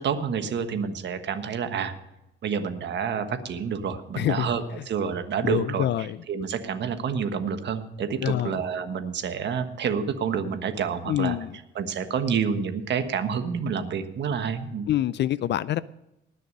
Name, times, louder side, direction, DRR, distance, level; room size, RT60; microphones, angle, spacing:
voice 1, 0.0-1.9 2.4-11.4 11.7-14.9, right 6 dB, 65° right, 9 dB, 1.4 m, -28 dB
voice 2, 4.2-4.5 5.4-6.2 8.2-8.6 11.1-11.6 14.9-15.8, left 12 dB, 60° left, 18 dB, 0.5 m, -26 dB
19.5 x 6.6 x 5.4 m, 0.90 s
cardioid pair, 90°, 20 cm